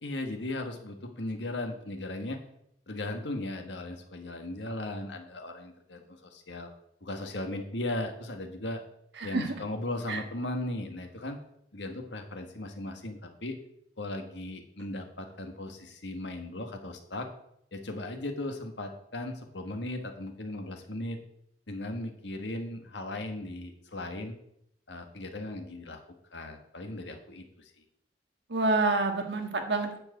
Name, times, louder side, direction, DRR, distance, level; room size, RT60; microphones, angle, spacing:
voice 1, 0.0-2.4 2.9-6.7 7.0-8.8 9.2-11.4 11.7-13.6 14.0-17.3 17.7-21.2 21.7-24.4 24.9-26.0 26.3-27.7, left 1 dB, 85° left, 5 dB, 1.6 m, -37 dB
voice 2, 28.5-30.0, right 3 dB, 70° right, 4 dB, 1.5 m, -27 dB
9.6 x 4.8 x 7.9 m, 0.74 s
head